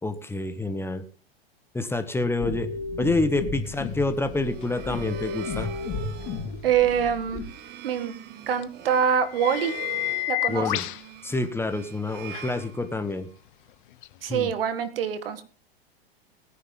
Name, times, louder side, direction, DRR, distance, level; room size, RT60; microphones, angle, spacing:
voice 1, 0.0-1.0 1.7-5.7 10.5-10.8 11.2-13.3 14.3-14.5, left 2 dB, 10° left, 9 dB, 1.3 m, -28 dB
sound 1, 2.4-7.4, left 4 dB, 35° left, 3.8 m, -33 dB
sound 2, 4.3-13.3, right 11 dB, 35° right, 1.2 m, -43 dB
sound 3, 4.6-4.7 8.6-8.7 9.1-11.0 12.3-12.4 14.0-14.1, left 18 dB, 55° left, 0.8 m, -30 dB
voice 2, 6.6-7.4 7.8-8.1 8.5-9.8 10.3-10.9 14.2-15.4, right 8 dB, 70° right, 11 dB, 1.8 m, -25 dB
19.5 x 9.7 x 3.8 m, 0.39 s
figure-of-eight pair, 95°, 30 cm